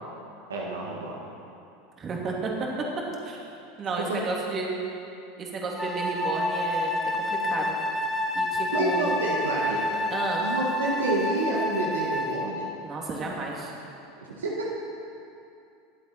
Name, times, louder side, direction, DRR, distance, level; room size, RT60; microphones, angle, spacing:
voice 1, 0.5-1.2 4.0-4.2 8.7-10.0 10.4-12.7 14.4-14.7, right 2 dB, 85° right, -2 dB, 1.8 m, -29 dB
voice 2, 2.0-2.5 3.2-3.4 3.8-4.7 5.4-7.8 8.3-9.2 10.1-10.5 12.8-13.7, right 3 dB, 35° right, -2 dB, 2.8 m, -32 dB
Wind instrument woodwind instrument, 5.8-12.6, left 1 dB, 5° left, 1.6 m, -28 dB
21.0 x 8.1 x 4.4 m, 2.6 s
hypercardioid pair, 85°, 0 cm